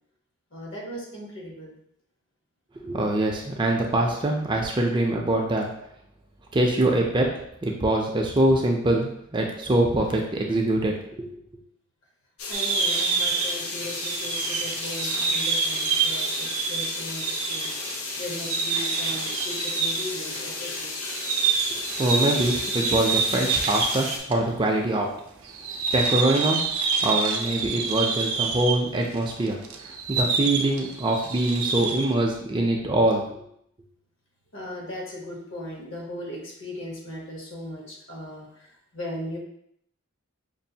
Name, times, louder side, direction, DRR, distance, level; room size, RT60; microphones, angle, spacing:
voice 1, 0.5-1.7 12.5-17.7 18.2-20.9 34.5-39.4, left 1 dB, 60° left, -2 dB, 1.1 m, -37 dB
voice 2, 2.8-5.7 6.5-7.3 7.6-11.3 21.7-25.1 25.9-26.6 27.0-29.6 30.1-33.3, right 1 dB, 20° right, 1 dB, 0.4 m, -24 dB
sound 1, 12.4-24.2, left 3 dB, 90° left, 0.6 m, -33 dB
sound 2, 12.5-24.4 24.6-24.7 25.4-32.1, right 5 dB, 80° right, 0.5 m, -27 dB
5.3 x 2.4 x 2.7 m, 0.72 s
head